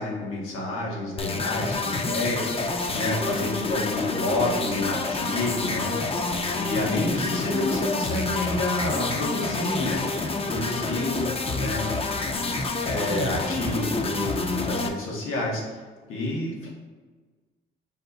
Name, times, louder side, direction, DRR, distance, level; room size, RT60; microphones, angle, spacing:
voice 1, 0.0-6.3 6.5-10.0 10.4-12.5 12.9-15.6 16.1-16.7, left 2 dB, 85° left, -3 dB, 1.2 m, -29 dB
sound 1, 1.2-14.9, left 3 dB, 25° left, 0.5 m, -28 dB
5.5 x 2.3 x 4.0 m, 1.4 s
cardioid pair, 75°, 21 cm